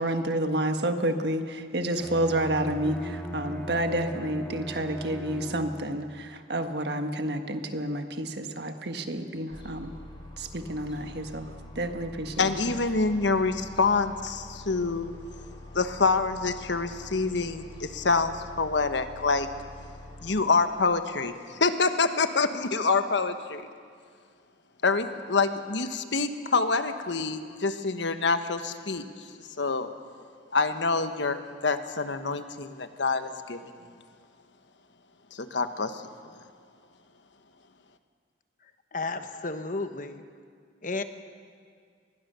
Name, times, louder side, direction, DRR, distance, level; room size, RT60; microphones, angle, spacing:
voice 1, 0.0-9.9 10.4-11.5 11.7-12.8, right 1 dB, 60° right, 6 dB, 1.6 m, -30 dB
Bowed string instrument, 1.9-6.0, equal, 5° left, 1.4 m, -39 dB
sound 1, 9.5-20.4, left 1 dB, 25° left, 3.6 m, -45 dB
voice 2, 12.4-15.1 15.7-19.5 20.2-23.6 24.8-29.0 29.6-29.9 30.5-33.6 35.3-36.0, left 4 dB, 70° left, 9 dB, 1.3 m, -26 dB
voice 3, 38.9-40.2 40.8-41.0, left 3 dB, 45° left, 9 dB, 1.2 m, -32 dB
25.5 x 21.0 x 6.9 m, 2.1 s
head